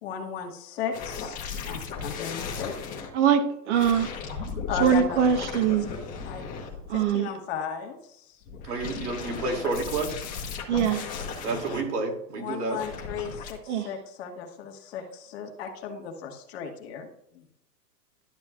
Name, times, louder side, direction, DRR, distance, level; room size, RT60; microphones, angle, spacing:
voice 1, 0.0-1.4 1.7-2.7 4.7-5.2 6.2-6.4 6.9-8.4 12.4-17.1 17.3-17.4, left 7 dB, 40° left, 1.5 m, -35 dB
sound 1, 0.9-3.1 3.7-7.1 8.4-11.8 12.7-13.5, left 5 dB, 15° left, 1.1 m, -36 dB
voice 2, 3.1-4.1 4.8-5.9 6.9-7.3 10.7-11.1 13.7-13.9, right 8 dB, 45° right, 1.1 m, -23 dB
voice 3, 8.6-10.1 11.4-12.8, right 3 dB, 70° right, 2.6 m, -30 dB
11.5 x 7.1 x 2.4 m
hypercardioid pair, 155°, 49 cm